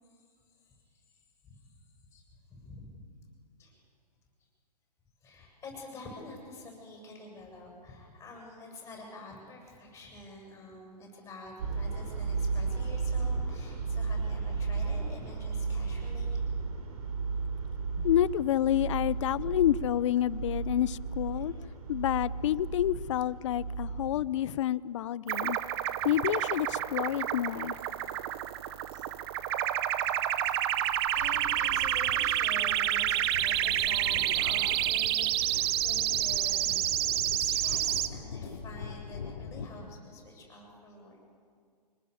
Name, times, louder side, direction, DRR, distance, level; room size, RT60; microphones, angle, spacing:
voice 1, 0.6-1.0 1.4-1.7 2.1-2.2 2.5-2.9 3.6-3.7 5.2-16.4 21.3-21.6 24.0-24.4 26.0-26.4 26.7-26.8 27.8-29.1 29.9-30.7 31.1-36.7 37.3-41.2, left 2 dB, 15° left, -1 dB, 7.8 m, -48 dB
sound 1, 11.6-24.1, right 4 dB, 60° right, 3.7 m, -34 dB
voice 2, 18.0-21.5 21.9-25.6 26.0-27.8, left 12 dB, 45° left, 20 dB, 0.6 m, -28 dB
sound 2, 25.3-38.1, right 13 dB, 40° right, 0.8 m, -29 dB
sound 3, 30.9-39.7, left 5 dB, 75° left, 3.2 m, -43 dB
25.0 x 21.5 x 7.1 m, 2.1 s
hypercardioid pair, 145°, 21 cm